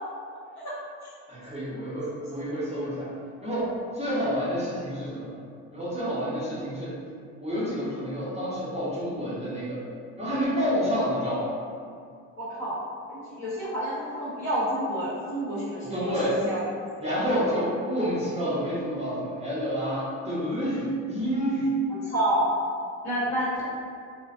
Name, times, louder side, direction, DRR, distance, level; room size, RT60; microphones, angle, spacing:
voice 1, 1.3-3.1 3.4-3.7 3.9-5.4 5.7-6.9 7.4-9.8 10.2-11.5 15.9-16.4 17.0-21.7, equal, 15° right, -10 dB, 0.8 m, -28 dB
voice 2, 12.4-12.8 13.1-16.6 22.0-22.4 23.0-23.6, right 1 dB, 45° left, -8 dB, 1.1 m, -29 dB
2.4 x 2.1 x 2.4 m, 2.2 s
hypercardioid pair, 60°, 40 cm